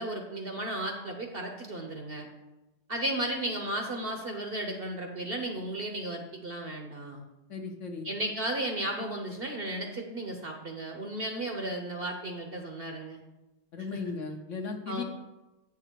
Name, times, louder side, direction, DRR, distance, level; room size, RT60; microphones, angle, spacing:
voice 1, 0.0-2.3 2.9-7.2 8.0-13.2 13.9-14.0 14.9-15.0, right 1 dB, 45° right, 3 dB, 0.8 m, -34 dB
voice 2, 7.5-8.1 13.7-15.0, left 4 dB, 55° left, 3 dB, 1.0 m, -36 dB
8.7 x 5.9 x 4.6 m, 1.0 s
omnidirectional pair, 1.7 m